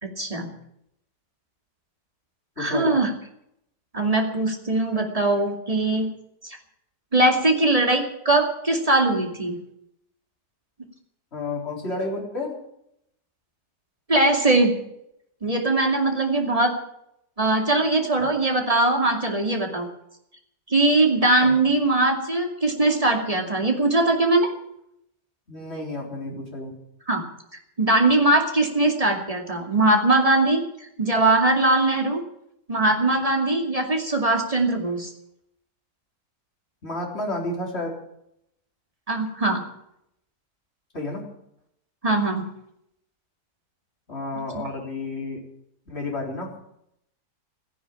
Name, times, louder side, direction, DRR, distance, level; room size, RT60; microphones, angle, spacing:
voice 1, 0.0-0.5 2.6-3.1 3.9-6.1 6.4-6.6 7.1-9.6 14.1-14.7 15.4-16.7 17.4-19.9 20.7-24.5 27.1-27.2 27.8-32.2 32.7-35.1 39.1-39.6 42.0-42.4 44.5-44.7, right 2 dB, 20° right, 3 dB, 2.5 m, -21 dB
voice 2, 2.6-3.0 11.3-12.6 18.2-18.3 21.4-21.5 25.5-26.8 36.8-38.0 40.9-41.3 44.1-45.4 45.9-46.5, left 2 dB, 40° left, 0 dB, 4.1 m, -31 dB
15.0 x 11.0 x 8.9 m, 0.78 s
omnidirectional pair, 1.8 m